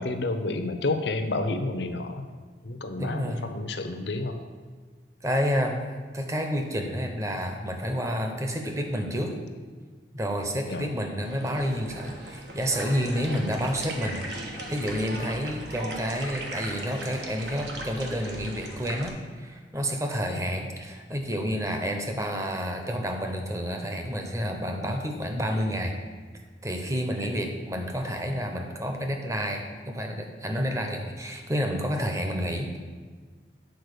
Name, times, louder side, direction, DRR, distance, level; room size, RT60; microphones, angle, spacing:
voice 1, 0.0-2.3 2.6-4.4 10.7-10.9 13.4-13.5 20.3-20.4 27.2-27.3, left 2 dB, 80° left, 7 dB, 0.7 m, -30 dB
voice 2, 3.0-3.5 5.2-9.3 10.1-14.2 14.7-26.0 26.6-32.8, equal, 20° right, 4 dB, 0.8 m, -29 dB
sound 1, 11.2-19.1, right 1 dB, 75° right, 1.3 m, -38 dB
9.3 x 4.3 x 6.7 m, 1.5 s
head